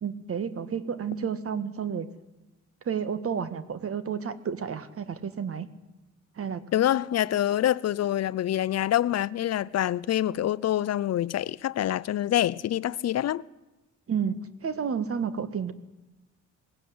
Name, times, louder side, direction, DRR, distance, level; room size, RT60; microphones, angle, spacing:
voice 1, 0.0-2.1 2.8-5.7 6.4-6.6 14.1-15.7, right 7 dB, 50° right, 1.7 m, -31 dB
voice 2, 6.7-13.4, left 12 dB, 55° left, 0.6 m, -26 dB
19.5 x 16.5 x 9.5 m
cardioid pair, 90°, 30 cm